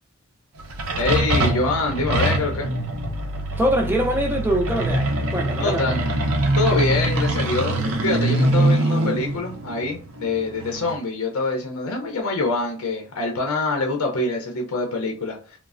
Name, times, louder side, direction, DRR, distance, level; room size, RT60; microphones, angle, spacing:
sound 1, 0.6-10.9, right 1 dB, 70° right, 0.6 m, -23 dB
voice 1, 1.0-2.7 5.6-6.0 6.6-7.8 8.0-15.4, left 3 dB, 80° left, 0.6 m, -25 dB
voice 2, 3.5-5.8, right 1 dB, 10° right, 0.3 m, -23 dB
3.1 x 2.0 x 2.4 m
head